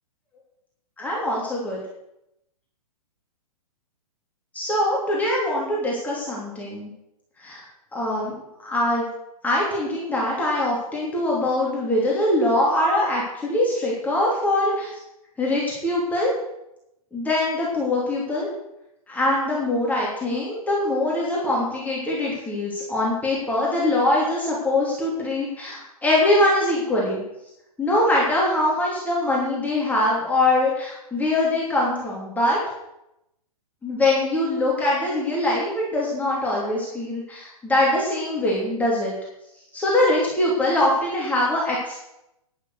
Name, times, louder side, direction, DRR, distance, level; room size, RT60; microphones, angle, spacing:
voice 1, 1.0-1.8 4.5-6.9 7.4-7.6 7.9-8.3 8.6-9.1 9.4-14.9 15.4-16.3 17.1-18.5 19.1-27.2 27.8-32.6 33.8-39.1 39.7-42.0, left 1 dB, 10° left, -5 dB, 3.3 m, -23 dB
11.0 x 11.0 x 6.6 m, 0.86 s
figure-of-eight pair, 115°, 19 cm